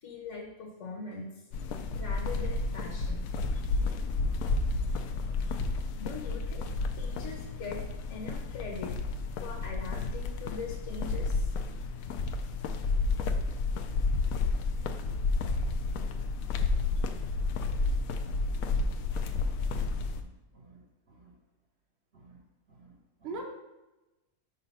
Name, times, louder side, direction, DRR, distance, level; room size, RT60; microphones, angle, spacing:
voice 1, 0.0-3.3 6.0-6.7 7.0-7.8 8.1-8.9 9.4-11.5, left 3 dB, 55° left, -3 dB, 1.2 m, -41 dB
sound 1, 1.5-20.2, left 3 dB, 70° left, 0.9 m, -31 dB
voice 2, 20.2-21.3 22.1-22.4 22.7-23.4, right 3 dB, 50° right, 0 dB, 1.0 m, -45 dB
4.8 x 4.1 x 5.5 m, 1.0 s
omnidirectional pair, 1.7 m